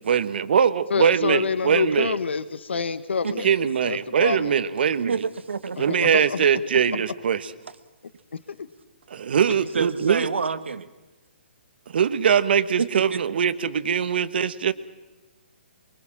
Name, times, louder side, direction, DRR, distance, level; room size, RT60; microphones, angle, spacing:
voice 1, 0.0-2.1 3.4-5.2 5.8-7.4 9.1-10.3 11.9-14.7, right 7 dB, 60° right, 14 dB, 1.4 m, -22 dB
voice 2, 0.9-3.5 3.8-4.5 5.8-6.4 8.5-8.7, left 5 dB, 85° left, 15 dB, 1.1 m, -27 dB
voice 3, 5.1-6.1 9.4-10.9 12.8-13.2, right 5 dB, 90° right, 11 dB, 1.7 m, -28 dB
24.5 x 23.5 x 7.4 m, 1.1 s
hypercardioid pair, 160°, 6 cm